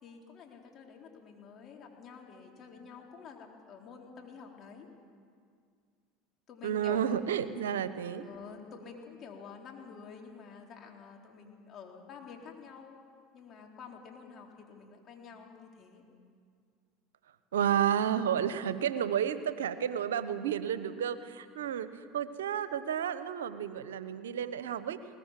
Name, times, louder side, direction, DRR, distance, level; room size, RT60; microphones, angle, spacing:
voice 1, 0.0-4.9 6.5-7.2 8.2-13.0 13.3-16.0 21.6-21.7, left 6 dB, 45° left, 0 dB, 4.1 m, -49 dB
voice 2, 6.6-8.3 17.5-25.0, right 9 dB, 85° right, 13 dB, 0.9 m, -31 dB
21.5 x 19.5 x 7.6 m, 2.1 s
hypercardioid pair, 85°, 0 cm